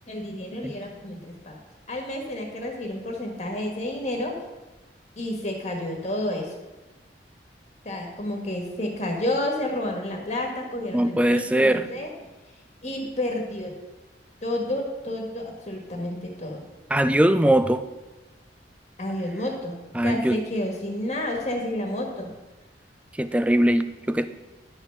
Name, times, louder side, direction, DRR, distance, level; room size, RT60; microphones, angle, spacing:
voice 1, 0.1-1.6 1.9-4.3 5.2-6.6 7.8-12.1 12.8-13.7 14.4-16.7 19.0-22.3, left 1 dB, 40° left, 1 dB, 1.5 m, -30 dB
voice 2, 10.9-11.9 16.9-17.8 19.9-20.4 23.2-24.3, right 1 dB, 5° right, 11 dB, 0.4 m, -21 dB
11.0 x 5.6 x 6.7 m, 1.1 s
head